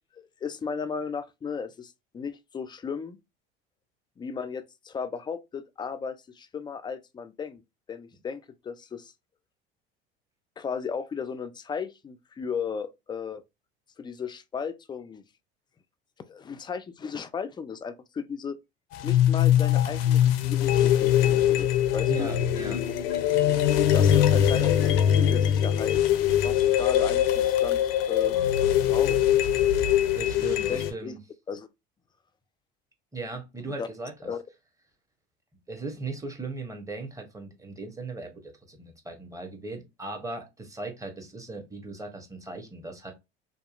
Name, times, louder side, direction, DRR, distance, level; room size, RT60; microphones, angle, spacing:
voice 1, 0.1-3.2 4.2-7.6 7.9-9.1 10.6-13.4 14.0-15.2 16.2-18.6 19.0-22.3 23.8-26.0 26.3-27.8 28.1-28.4 28.9-29.2 30.3-31.1 31.5-31.7 33.8-33.9 34.3-34.4, left 6 dB, 15° left, 0.3 m, -35 dB
sound 1, 18.9-30.9, left 10 dB, 75° left, 0.5 m, -22 dB
voice 2, 22.0-22.8 30.1-31.2 33.1-34.3 35.7-43.1, right 3 dB, 10° right, 0.9 m, -38 dB
2.7 x 2.3 x 2.4 m
hypercardioid pair, 70°, 29 cm